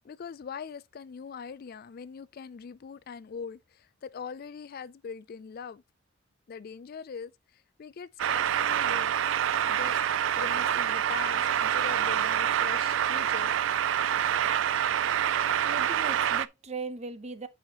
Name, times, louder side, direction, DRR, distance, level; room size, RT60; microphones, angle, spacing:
voice 1, 0.0-5.8 6.5-7.3 7.8-9.1 9.7-10.0 10.4-13.5, left 6 dB, 50° left, 0.4 m, -41 dB
sound 1, 8.2-16.5, right 10 dB, 70° right, 0.4 m, -26 dB
voice 2, 15.6-17.5, right 3 dB, 35° right, 0.8 m, -38 dB
8.8 x 5.7 x 2.9 m
head